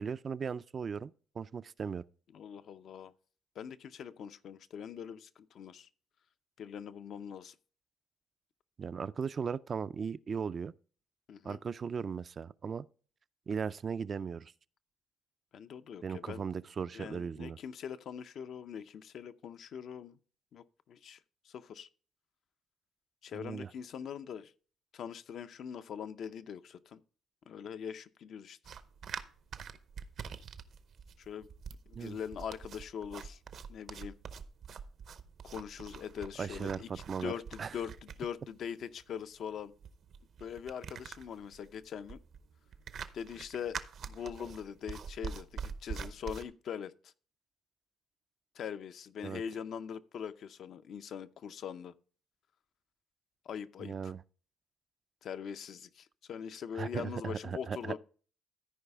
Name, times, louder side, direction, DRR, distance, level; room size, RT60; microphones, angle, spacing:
voice 1, 0.0-2.0 8.8-10.7 11.4-12.9 13.5-14.5 16.0-17.6 23.3-23.7 31.9-32.2 36.4-37.3 37.6-37.7 49.2-49.4 53.8-54.2 56.7-57.9, right 6 dB, 40° right, 0.3 m, -37 dB
voice 2, 2.3-3.1 3.6-5.9 6.6-7.5 11.3-11.6 15.5-16.4 16.9-20.2 20.5-21.2 21.4-21.9 23.2-24.5 24.9-27.0 27.5-28.6 31.2-31.5 31.9-33.4 33.7-34.2 35.4-39.7 40.4-42.2 43.1-47.1 48.6-51.9 53.5-54.1 55.2-58.0, left 8 dB, 65° left, 0.5 m, -42 dB
sound 1, 28.6-46.4, right 6 dB, 60° right, 0.7 m, -45 dB
14.0 x 4.8 x 3.4 m
cardioid pair, 95°, 0 cm